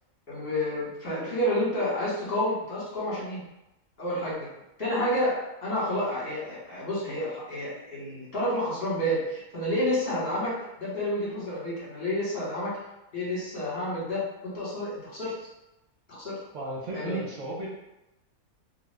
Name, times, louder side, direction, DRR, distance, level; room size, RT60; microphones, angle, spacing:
voice 1, 0.3-3.4 4.0-4.5 4.8-5.4 5.6-12.7 13.1-15.3 16.1-16.3 16.9-17.2, left 1 dB, 45° left, -8 dB, 1.4 m, -29 dB
voice 2, 16.5-17.7, right 1 dB, 60° right, -3 dB, 1.1 m, -35 dB
2.7 x 2.4 x 3.3 m, 0.94 s
omnidirectional pair, 1.5 m